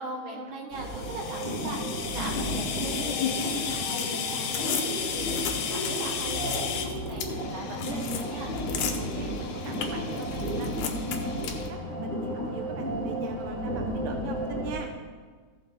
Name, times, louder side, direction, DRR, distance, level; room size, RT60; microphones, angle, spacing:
voice 1, 0.0-8.5, right 2 dB, 50° right, -1 dB, 1.9 m, -40 dB
sound 1, 0.7-14.8, equal, 35° left, 2.6 m, -33 dB
sound 2, 0.8-11.7, left 7 dB, 90° left, 2.3 m, -33 dB
voice 2, 9.0-14.9, right 6 dB, 80° right, 4 dB, 1.3 m, -41 dB
14.5 x 5.8 x 4.0 m, 1.5 s
omnidirectional pair, 3.3 m